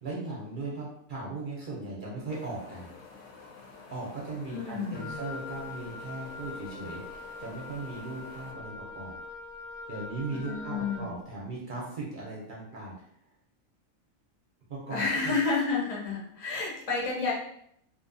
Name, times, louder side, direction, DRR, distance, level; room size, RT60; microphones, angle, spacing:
voice 1, 0.0-2.9 3.9-9.2 9.9-13.1 14.7-15.4, right 3 dB, 50° right, -4 dB, 0.6 m, -38 dB
Wind, 2.3-8.5, left 4 dB, 65° left, 0.8 m, -50 dB
voice 2, 4.5-5.2 10.3-11.1 14.9-17.3, left 4 dB, 40° left, -3 dB, 0.6 m, -30 dB
Wind instrument woodwind instrument, 4.9-11.2, left 4 dB, 90° left, 1.0 m, -43 dB
2.6 x 2.2 x 2.5 m, 0.71 s
omnidirectional pair, 1.4 m